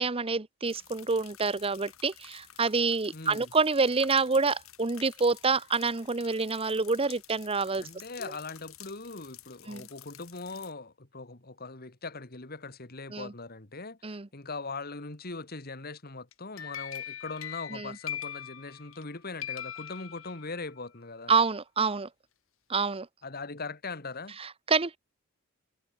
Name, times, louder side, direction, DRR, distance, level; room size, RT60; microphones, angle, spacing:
voice 1, 0.0-7.9 9.7-9.9 13.1-13.3 14.0-14.3 17.7-17.9 21.3-22.1 22.7-23.1 24.4-25.0, right 4 dB, 25° right, 0.9 m, -27 dB
sound 1, 0.6-10.7, left 12 dB, 90° left, 3.7 m, -51 dB
voice 2, 3.1-3.5 7.8-21.3 23.2-24.4, left 3 dB, 45° left, 2.3 m, -40 dB
sound 2, 16.3-19.1 19.4-20.7, left 10 dB, 70° left, 1.4 m, -40 dB
head